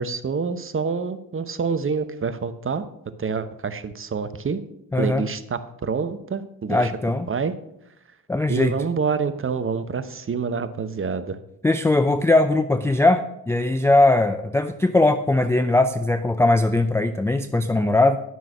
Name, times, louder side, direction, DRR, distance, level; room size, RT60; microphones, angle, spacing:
voice 1, 0.0-2.8 3.2-4.6 5.0-6.9 7.3-7.5 8.5-11.4, right 5 dB, 25° right, 12 dB, 0.9 m, -27 dB
voice 2, 4.9-5.2 6.7-7.3 8.3-8.7 11.6-18.2, left 2 dB, 5° left, 9 dB, 0.4 m, -20 dB
9.3 x 6.1 x 6.1 m, 0.83 s
hypercardioid pair, 45°, 48 cm